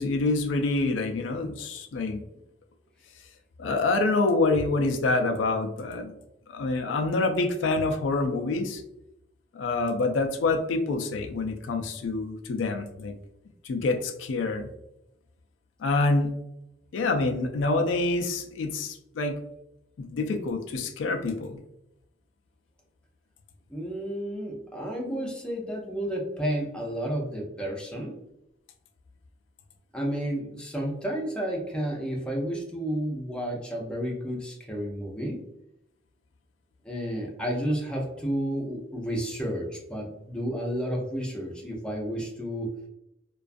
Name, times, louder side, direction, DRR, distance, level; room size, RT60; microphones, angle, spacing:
voice 1, 0.0-2.2 3.6-6.1 6.5-8.8 9.5-13.1 13.6-14.7 15.8-16.4 16.9-19.4 20.0-21.6 25.1-25.3, left 3 dB, 85° left, 4 dB, 0.4 m, -26 dB
voice 2, 23.7-28.2 29.9-35.4 36.8-42.7, equal, 5° left, -2 dB, 0.5 m, -31 dB
2.4 x 2.3 x 2.4 m, 0.84 s
head